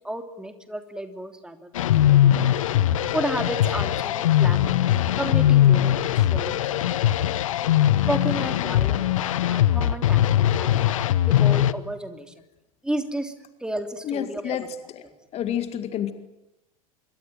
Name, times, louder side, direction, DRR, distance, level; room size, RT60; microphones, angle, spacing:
voice 1, 0.0-2.5 3.1-4.6 5.2-7.1 8.0-9.0 9.5-11.0 11.3-12.3 12.8-13.3 13.6-14.6, right 1 dB, 5° right, 7 dB, 3.0 m, -32 dB
sound 1, 1.8-11.7, left 12 dB, 65° left, 1.1 m, -20 dB
voice 2, 14.0-14.7 14.9-15.0 15.3-16.1, left 10 dB, 35° left, 10 dB, 2.1 m, -29 dB
26.0 x 24.0 x 9.3 m, 0.94 s
figure-of-eight pair, 85°, 18 cm